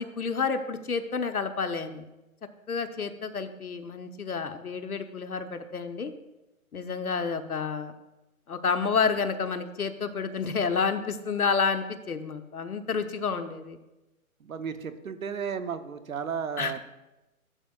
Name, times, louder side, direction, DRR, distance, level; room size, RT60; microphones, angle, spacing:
voice 1, 0.0-2.0 2.7-6.1 6.7-7.9 8.5-13.8 16.6-16.8, left 5 dB, 80° left, 9 dB, 0.9 m, -29 dB
voice 2, 14.4-16.8, right 6 dB, 65° right, 10 dB, 0.9 m, -34 dB
13.5 x 7.3 x 2.3 m, 1.0 s
figure-of-eight pair, 145°, 44 cm